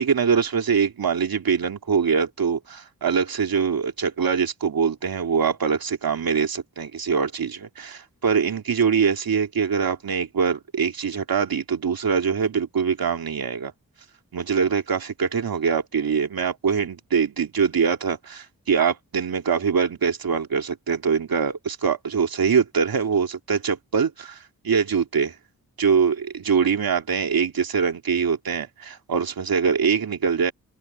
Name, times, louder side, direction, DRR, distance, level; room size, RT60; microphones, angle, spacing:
voice 1, 0.0-13.7 14.3-24.4 24.6-25.3 25.8-30.5, right 6 dB, 70° right, 2.7 m, -23 dB
open air
cardioid pair, 50°, 36 cm